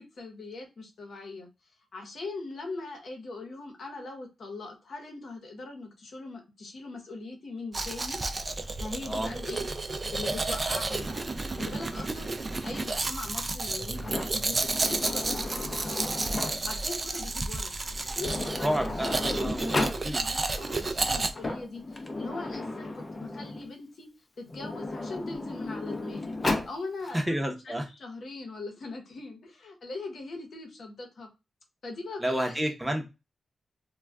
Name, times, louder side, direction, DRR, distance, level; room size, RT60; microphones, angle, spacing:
voice 1, 0.0-1.5 1.9-8.2 8.8-9.7 10.1-11.3 11.5-12.3 12.6-16.1 16.6-17.7 18.1-18.8 19.0-19.2 19.5-24.1 24.4-26.3 26.6-31.3 31.8-32.7, left 3 dB, 65° left, 0.9 m, -41 dB
Domestic sounds home sounds, 7.7-21.3, right 3 dB, 30° right, 0.3 m, -31 dB
Sliding door, 14.0-16.8 17.8-17.9 18.2-20.0 21.1-23.7 24.5-26.7, left 2 dB, 30° left, 0.5 m, -34 dB
voice 2, 18.6-20.2 27.1-27.9 32.2-33.1, equal, 5° right, 0.7 m, -30 dB
2.2 x 2.2 x 3.4 m
wide cardioid pair, 105°, 0 cm